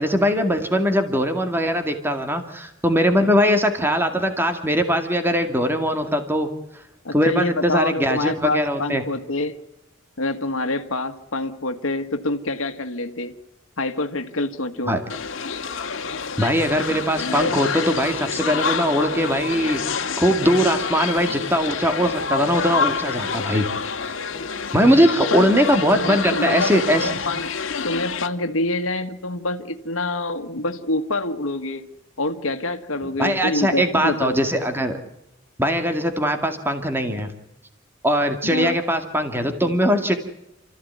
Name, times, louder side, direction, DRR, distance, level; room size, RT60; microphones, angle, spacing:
voice 1, 0.0-6.5 7.1-9.0 14.9-15.0 16.4-19.8 20.2-23.7 24.0-24.1 24.7-27.2 33.2-35.0 35.6-37.3 38.0-40.1, equal, 10° right, 6 dB, 2.2 m, -21 dB
voice 2, 7.0-9.6 10.2-13.3 13.8-15.0 25.3-25.5 25.9-27.6 27.8-31.9 32.2-34.4 38.4-38.8, left 2 dB, 90° left, 7 dB, 1.7 m, -26 dB
sound 1, 15.1-28.3, left 5 dB, 70° left, 1.9 m, -27 dB
29.0 x 15.0 x 9.6 m, 0.87 s
head